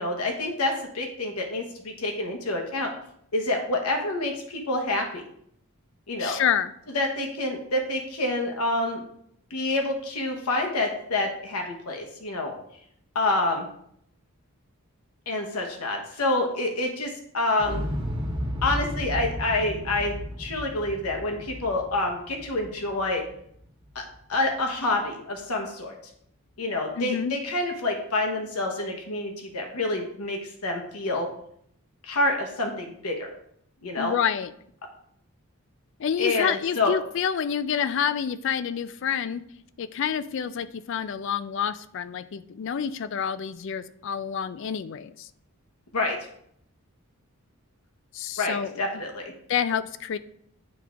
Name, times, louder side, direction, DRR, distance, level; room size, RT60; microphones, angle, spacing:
voice 1, 0.0-2.9 3.3-5.2 6.1-6.4 6.9-9.0 9.5-12.5 13.1-13.6 15.3-17.8 18.6-23.2 23.9-24.0 24.3-25.9 26.6-31.3 32.1-33.3 33.8-34.1 36.2-36.9 45.9-46.2 48.4-49.3, left 2 dB, 90° left, 1 dB, 1.0 m, -27 dB
voice 2, 6.2-6.7 27.0-27.3 34.0-34.5 36.0-39.4 39.8-45.3 48.1-48.7 49.5-50.2, left 8 dB, 55° left, 15 dB, 0.3 m, -28 dB
Explosion, 17.6-23.6 23.9-24.0, equal, 25° right, 1.1 m, -33 dB
9.3 x 3.5 x 3.7 m, 0.70 s
head